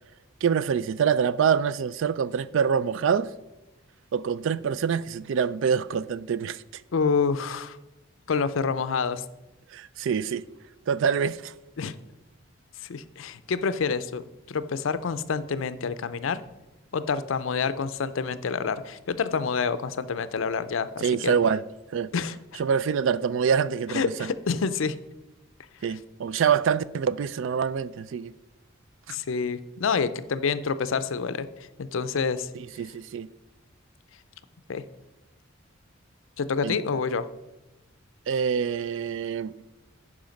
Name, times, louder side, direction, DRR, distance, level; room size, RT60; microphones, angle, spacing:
voice 1, 0.4-3.3 4.1-6.6 9.7-10.4 10.9-11.5 21.0-21.6 21.9-22.1 22.6-24.3 25.8-28.3 29.1-29.2 32.5-33.3 36.6-36.9 38.3-39.7, right 7 dB, 65° right, 0.3 m, -25 dB
voice 2, 6.9-7.8 8.3-9.2 11.8-11.9 12.8-16.4 16.9-21.3 22.1-22.6 23.9-24.9 29.1-31.5 31.8-32.5 34.7-34.8 36.4-37.3, left 5 dB, 70° left, 0.5 m, -28 dB
10.5 x 4.9 x 5.1 m
head